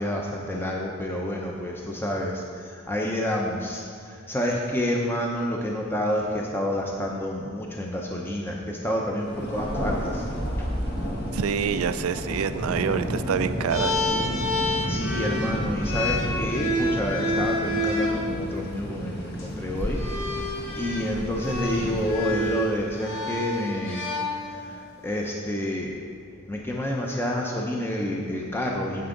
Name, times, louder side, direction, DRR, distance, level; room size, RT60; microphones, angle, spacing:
voice 1, 0.0-10.3 10.6-10.7 14.4-24.0 24.3-25.9 26.5-29.1, left 1 dB, 10° left, -1 dB, 0.7 m, -29 dB
Thunder, 9.2-22.9, equal, 50° left, 1.4 m, -32 dB
voice 2, 11.3-14.0, right 7 dB, 85° right, 11 dB, 0.4 m, -26 dB
sound 1, 13.7-18.2 19.2-19.4 19.9-24.8, left 1 dB, 70° left, 1.5 m, -29 dB
9.4 x 8.0 x 3.8 m, 2.3 s
head